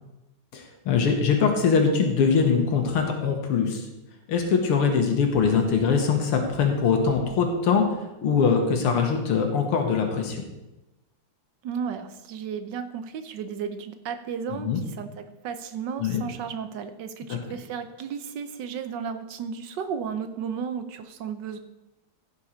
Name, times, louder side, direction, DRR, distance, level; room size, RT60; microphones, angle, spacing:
voice 1, 0.5-3.9 4.3-7.9 8.2-10.4 14.6-14.8 16.0-16.2 17.3-17.4, left 5 dB, 85° left, 3 dB, 2.2 m, -22 dB
voice 2, 11.6-21.6, right 7 dB, 65° right, 9 dB, 1.2 m, -34 dB
15.5 x 5.6 x 4.4 m, 0.98 s
omnidirectional pair, 2.4 m